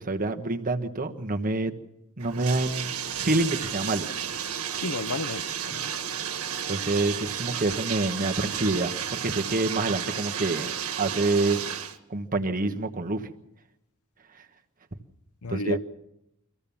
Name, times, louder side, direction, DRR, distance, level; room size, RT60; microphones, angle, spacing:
voice 1, 0.0-1.7 2.2-2.9 3.2-4.1 6.7-8.9 9.2-10.7 11.0-11.6 12.1-13.3 15.5-15.8, right 2 dB, 40° right, 1.4 m, -27 dB
Bathtub (filling or washing), 2.2-12.0, right 8 dB, 75° right, 1.7 m, -32 dB
voice 2, 4.8-5.9 15.4-15.8, left 3 dB, 70° left, 0.7 m, -32 dB
24.5 x 15.5 x 7.1 m
head